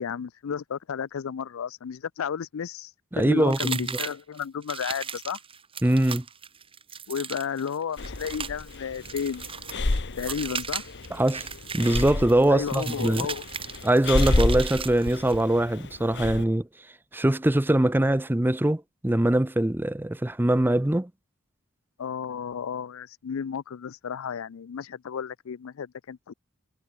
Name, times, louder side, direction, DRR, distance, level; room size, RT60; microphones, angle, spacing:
voice 1, 0.0-2.9 3.2-5.4 7.1-9.5 10.2-10.9 12.5-13.5 22.0-26.3, left 7 dB, 70° left, 0.4 m, -32 dB
voice 2, 3.1-3.8 5.8-6.2 11.1-11.5 11.7-13.3 13.8-16.7 17.1-21.1, right 1 dB, 10° right, 0.5 m, -22 dB
sound 1, 3.5-15.4, right 6 dB, 25° right, 2.1 m, -36 dB
Breathing, 8.0-16.4, left 2 dB, 55° left, 1.2 m, -30 dB
head